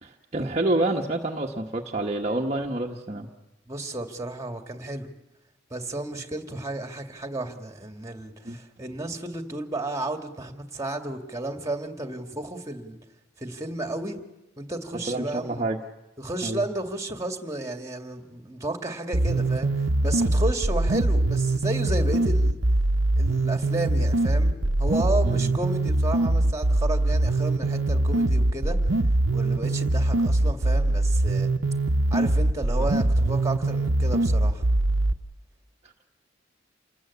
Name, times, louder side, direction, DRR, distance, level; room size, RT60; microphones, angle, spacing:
voice 1, 0.0-3.3 8.4-8.6 15.1-15.8 16.4-16.6 25.2-25.5 32.8-32.9, right 2 dB, 35° right, -1 dB, 1.3 m, -28 dB
voice 2, 3.7-5.1 5.7-13.0 13.4-14.2 14.6-15.7 16.2-22.6 23.2-28.8 29.3-31.5 32.1-34.6, right 2 dB, 15° right, 5 dB, 2.2 m, -32 dB
sound 1, 19.1-35.1, right 2 dB, 85° right, 1.1 m, -22 dB
28.0 x 20.0 x 8.4 m, 1.0 s
head